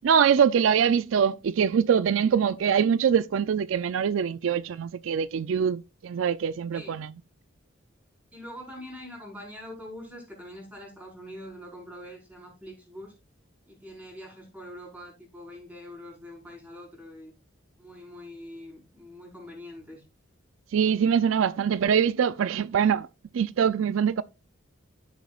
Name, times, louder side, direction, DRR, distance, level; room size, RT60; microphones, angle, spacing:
voice 1, 0.0-7.1 20.7-23.1 23.3-24.2, right 7 dB, 75° right, 0.4 m, -23 dB
voice 2, 8.3-13.1 13.6-17.3 17.8-20.0, left 1 dB, 5° right, 4.5 m, -44 dB
13.0 x 7.2 x 2.4 m
head